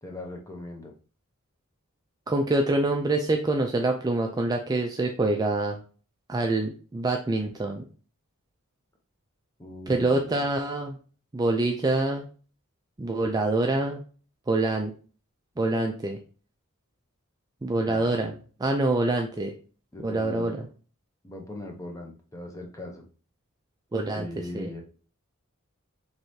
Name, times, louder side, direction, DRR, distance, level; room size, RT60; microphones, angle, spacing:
voice 1, 0.0-0.9 9.6-10.5 17.8-18.4 19.9-20.7 21.2-23.1 24.1-24.8, left 1 dB, 15° left, 2 dB, 0.7 m, -40 dB
voice 2, 2.3-5.8 6.3-7.9 9.9-11.0 11.3-12.3 13.0-14.0 14.5-14.9 15.6-16.2 17.6-18.3 18.6-19.5 20.0-20.6 23.9-24.3 24.5-24.7, right 2 dB, 15° right, 2 dB, 0.3 m, -25 dB
4.7 x 3.2 x 2.7 m, 0.38 s
head